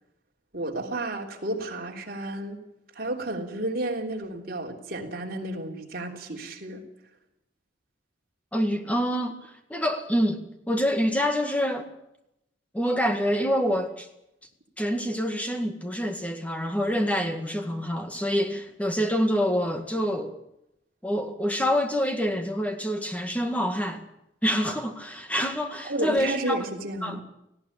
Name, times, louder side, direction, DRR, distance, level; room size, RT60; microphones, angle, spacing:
voice 1, 0.5-2.6 2.9-6.8 25.8-27.2, right 1 dB, 50° right, 3.4 m, -32 dB
voice 2, 8.5-9.4 9.7-10.4 10.7-11.9 12.7-14.1 14.8-20.4 21.0-24.1 24.4-26.6 27.0-27.2, equal, 10° left, 2.0 m, -26 dB
18.5 x 16.5 x 8.7 m
head